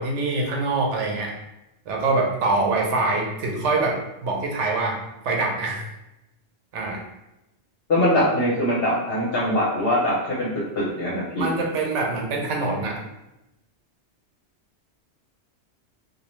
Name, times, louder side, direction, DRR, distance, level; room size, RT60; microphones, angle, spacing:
voice 1, 0.0-1.3 1.9-5.8 6.7-7.0 11.4-13.0, right 3 dB, 90° right, 0 dB, 0.9 m, -24 dB
voice 2, 7.9-10.5 10.8-11.5, left 1 dB, 60° left, -6 dB, 0.8 m, -22 dB
2.3 x 2.0 x 2.9 m, 0.91 s
omnidirectional pair, 1.2 m